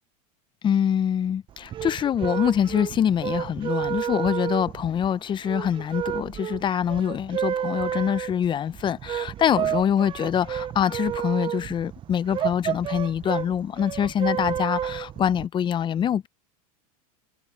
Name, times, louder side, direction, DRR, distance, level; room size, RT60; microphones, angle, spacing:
voice 1, 0.6-16.3, left 9 dB, 25° left, 0.6 m, -25 dB
sound 1, 1.5-15.5, right 10 dB, 25° right, 0.6 m, -31 dB
supercardioid pair, 125°, 20 cm